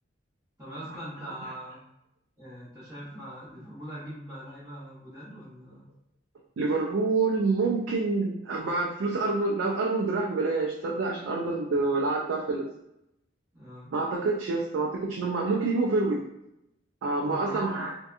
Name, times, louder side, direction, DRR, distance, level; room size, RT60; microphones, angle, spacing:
voice 1, 0.6-1.8 2.4-5.9 13.5-13.9 17.2-17.6, equal, 15° right, -11 dB, 0.8 m, -42 dB
voice 2, 6.6-12.7 13.9-16.2 17.0-17.9, right 3 dB, 90° right, -2 dB, 0.4 m, -27 dB
2.7 x 2.2 x 2.4 m, 0.84 s
head